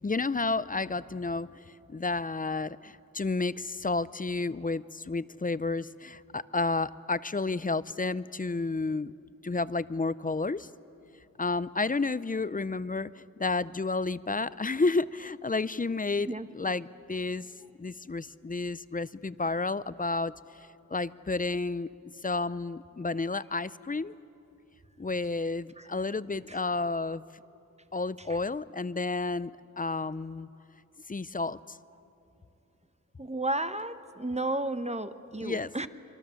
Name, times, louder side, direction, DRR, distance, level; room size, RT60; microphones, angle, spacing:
voice 1, 0.0-9.1 9.4-10.7 11.4-17.5 17.8-21.9 22.2-24.1 25.0-27.2 27.9-30.5 31.1-31.8 35.4-35.9, left 3 dB, 25° left, 17 dB, 0.5 m, -31 dB
voice 2, 33.2-35.9, right 2 dB, 20° right, 11 dB, 0.9 m, -32 dB
27.0 x 23.5 x 7.0 m, 2.7 s
wide cardioid pair, 70°, 32 cm